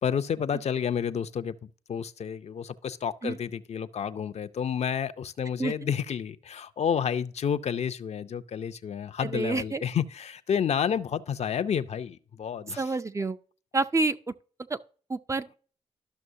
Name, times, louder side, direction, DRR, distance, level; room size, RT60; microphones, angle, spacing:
voice 1, 0.0-12.8, left 8 dB, 55° left, 0.5 m, -30 dB
voice 2, 9.2-9.8 12.8-13.4 13.7-14.2 14.7-14.8 15.1-15.6, right 3 dB, 20° right, 0.4 m, -28 dB
12.5 x 6.0 x 2.7 m
supercardioid pair, 45°, 14 cm